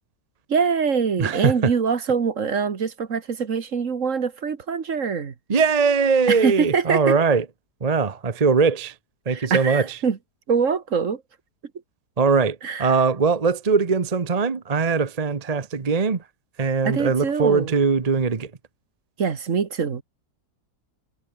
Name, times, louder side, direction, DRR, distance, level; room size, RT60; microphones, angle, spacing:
voice 1, 0.5-5.3 6.3-7.2 9.3-10.2 10.5-11.2 12.6-13.0 16.8-17.8 19.2-20.0, right 6 dB, 50° right, 1.7 m, -24 dB
voice 2, 1.2-1.7 5.5-7.4 7.8-8.9 9.3-9.9 12.2-16.2 16.6-18.5, right 5 dB, 30° right, 0.9 m, -21 dB
omnidirectional pair, 1.8 m